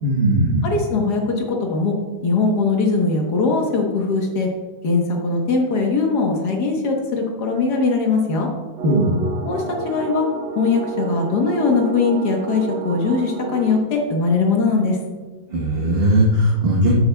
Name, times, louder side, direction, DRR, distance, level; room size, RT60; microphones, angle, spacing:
voice 1, 0.0-0.7 8.8-9.2 15.5-16.9, right 1 dB, 35° right, -5 dB, 1.2 m, -18 dB
voice 2, 0.6-2.0 2.2-4.5 4.8-8.5 9.4-10.3 10.6-15.0, left 4 dB, 60° left, 1 dB, 1.7 m, -20 dB
sound 1, 8.8-13.8, right 4 dB, 80° right, 1.8 m, -30 dB
12.0 x 7.8 x 2.3 m, 1.4 s
omnidirectional pair, 2.1 m